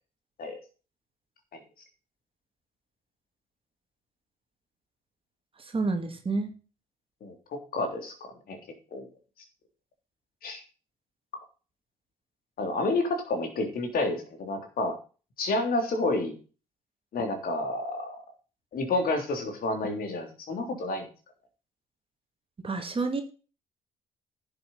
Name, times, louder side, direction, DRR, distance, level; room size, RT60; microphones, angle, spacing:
voice 1, 5.6-6.5 22.6-23.2, right 3 dB, 30° right, 5 dB, 2.4 m, -29 dB
voice 2, 7.2-8.6 8.9-9.0 10.4-10.6 12.6-14.9 15.4-16.3 17.1-18.1 18.7-21.1, left 2 dB, 55° left, 4 dB, 3.4 m, -30 dB
10.5 x 7.2 x 5.5 m, 0.35 s
hypercardioid pair, 55°, 18 cm